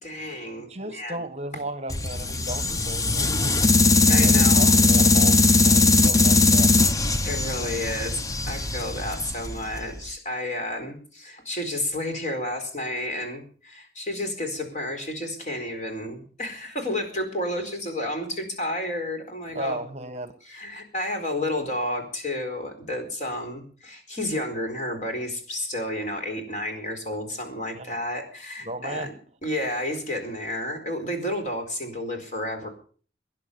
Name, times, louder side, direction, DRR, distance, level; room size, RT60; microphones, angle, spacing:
voice 1, 0.0-1.2 4.1-4.9 7.2-8.2 8.5-19.8 20.4-29.1 29.4-32.7, left 1 dB, 40° left, 5 dB, 4.4 m, -31 dB
voice 2, 0.7-3.3 4.1-6.7 19.5-20.3 27.7-27.9 28.6-29.1, right 1 dB, 35° right, 11 dB, 1.3 m, -35 dB
sound 1, 1.9-10.0, left 3 dB, 20° left, 0.7 m, -20 dB
18.0 x 11.0 x 6.9 m, 0.43 s
head